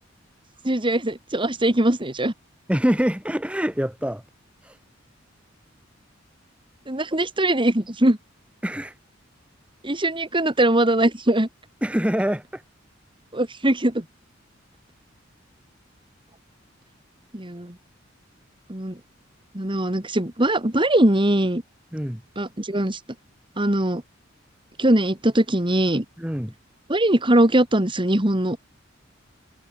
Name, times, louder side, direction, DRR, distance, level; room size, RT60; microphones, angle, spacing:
voice 1, 0.6-2.3 6.9-8.2 9.8-11.5 13.3-14.0 17.3-17.7 18.7-19.0 19.5-21.6 22.4-23.0 23.6-24.0 24.8-26.0 26.9-28.6, right 1 dB, 25° right, 2.4 m, -21 dB
voice 2, 2.7-4.2 4.6-4.8 8.6-8.9 11.8-12.6 21.9-22.2 26.2-26.5, equal, 5° right, 2.1 m, -25 dB
head